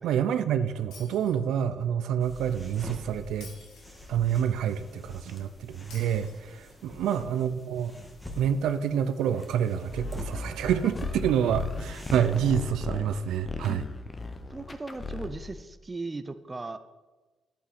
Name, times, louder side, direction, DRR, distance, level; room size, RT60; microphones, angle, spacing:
voice 1, 0.0-3.5 4.1-7.9 8.4-13.9, right 9 dB, 80° right, 10 dB, 0.5 m, -28 dB
Shatter, 0.9-1.9 3.4-4.4 5.9-6.9, left 4 dB, 85° left, 2.3 m, -51 dB
sound 1, 2.2-12.4, left 1 dB, 10° left, 1.8 m, -46 dB
sound 2, 9.9-15.6, left 3 dB, 30° left, 0.9 m, -36 dB
voice 2, 14.5-16.8, right 3 dB, 20° right, 10 dB, 0.6 m, -37 dB
11.0 x 8.2 x 4.2 m, 1.2 s
cardioid pair, 90°, 0 cm